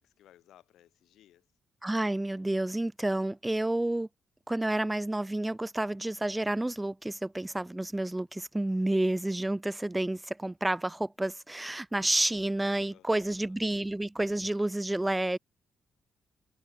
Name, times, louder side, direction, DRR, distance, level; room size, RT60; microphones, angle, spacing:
voice 1, 0.0-1.5 12.9-13.6, left 12 dB, 85° left, 4.3 m, -61 dB
voice 2, 1.8-4.1 4.5-15.4, right 1 dB, 15° right, 0.3 m, -30 dB
cardioid pair, 70°, 0 cm